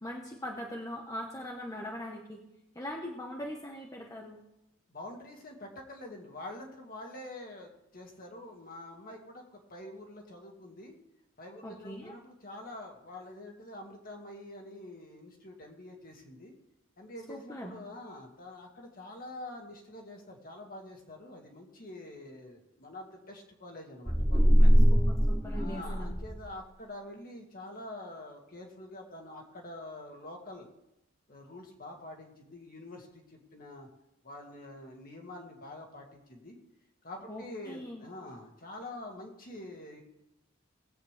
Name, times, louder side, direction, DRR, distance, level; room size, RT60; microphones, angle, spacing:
voice 1, 0.0-2.4 2.7-4.4 11.6-12.2 17.3-17.8 24.9-26.1 37.3-38.0, equal, 15° left, -1 dB, 1.1 m, -41 dB
voice 2, 4.9-11.0 11.4-16.5 17.0-24.8 25.5-30.7 31.3-33.9 34.2-36.6 37.0-40.0, left 1 dB, 45° left, 1 dB, 2.0 m, -46 dB
sound 1, 24.1-26.5, equal, ahead, 0.4 m, -22 dB
19.0 x 8.3 x 3.4 m, 0.88 s
head